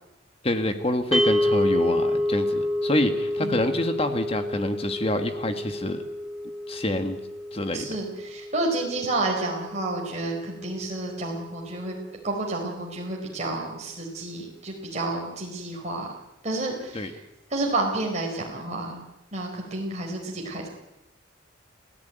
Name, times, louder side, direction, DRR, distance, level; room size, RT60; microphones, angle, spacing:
voice 1, 0.4-6.0 6.7-7.2 7.5-7.9 16.9-17.1, left 1 dB, 30° left, 7 dB, 1.7 m, -27 dB
sound 1, 1.1-11.4, left 1 dB, 5° right, 1.4 m, -29 dB
voice 2, 7.7-12.0 12.2-16.2 16.4-17.2 17.5-20.7, right 2 dB, 35° right, -1 dB, 4.6 m, -30 dB
27.5 x 15.5 x 9.3 m, 0.95 s
head